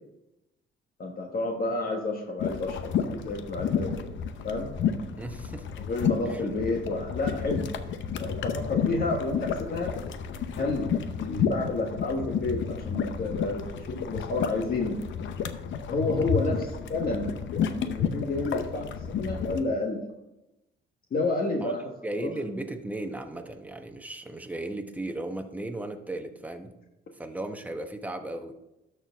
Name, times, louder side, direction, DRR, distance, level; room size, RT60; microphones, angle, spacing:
voice 1, 1.0-4.1 4.4-4.7 5.9-7.8 8.2-9.9 10.6-10.9 11.2-15.0 15.9-17.3 17.8-18.9 19.2-20.0 21.1-21.8 22.2-22.3, left 2 dB, 50° left, 1 dB, 1.3 m, -30 dB
sound 1, 2.4-19.6, left 7 dB, 70° left, 0.7 m, -31 dB
voice 2, 5.2-5.8 6.3-6.4 21.6-21.7 22.0-26.7 27.1-28.5, right 1 dB, 5° right, 5 dB, 0.9 m, -36 dB
12.5 x 4.7 x 3.5 m, 0.94 s
cardioid pair, 90°, 20 cm